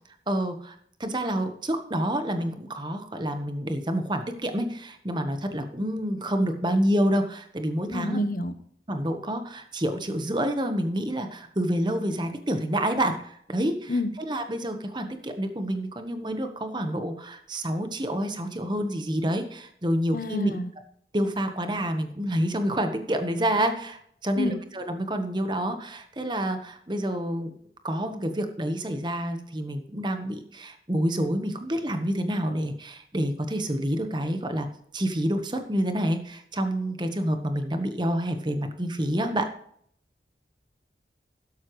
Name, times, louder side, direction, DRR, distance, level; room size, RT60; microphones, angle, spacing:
voice 1, 0.3-8.2 8.9-20.6 21.1-27.5 27.8-34.7 34.9-39.5, equal, 25° right, 7 dB, 1.2 m, -28 dB
voice 2, 7.9-8.5 13.9-14.1 20.1-20.7 24.4-24.6, left 1 dB, 50° left, 11 dB, 1.0 m, -27 dB
12.5 x 11.0 x 3.2 m, 0.65 s
head